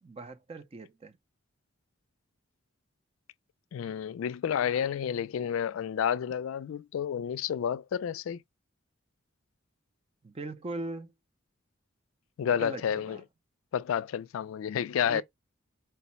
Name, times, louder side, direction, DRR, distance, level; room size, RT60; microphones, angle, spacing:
voice 1, 0.0-1.1 10.2-11.1 12.6-13.2 14.9-15.2, right 2 dB, 30° right, 0.4 m, -40 dB
voice 2, 3.7-8.4 12.4-13.2 13.7-15.2, left 8 dB, 75° left, 0.3 m, -30 dB
4.6 x 2.0 x 4.2 m
head